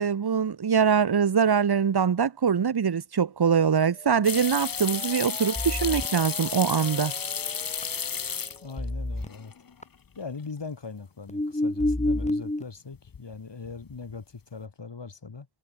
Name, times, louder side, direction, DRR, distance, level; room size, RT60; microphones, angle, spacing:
voice 1, 0.0-7.1, right 7 dB, 60° right, 1.1 m, -23 dB
sound 1, 3.8-8.4 8.8-9.3 9.8-9.9 11.3-12.6, left 1 dB, 15° left, 2.5 m, -31 dB
sound 2, 4.2-8.9 9.2-9.8 10.2-10.3 12.9-13.3 13.6-14.2, left 6 dB, 50° left, 0.9 m, -33 dB
voice 2, 8.6-9.5 10.2-15.5, left 4 dB, 70° left, 7.3 m, -40 dB
wide cardioid pair, 90°, 43 cm